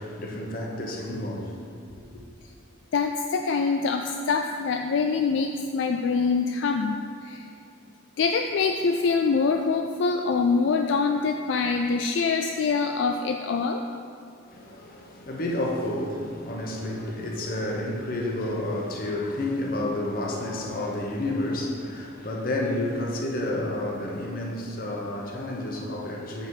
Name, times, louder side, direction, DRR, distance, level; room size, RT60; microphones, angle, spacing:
voice 1, 0.0-2.2 14.5-26.5, left 1 dB, 45° left, 0.9 m, -30 dB
voice 2, 2.9-7.5 8.2-13.8, left 4 dB, 70° left, 0.3 m, -25 dB
7.2 x 5.4 x 4.7 m
head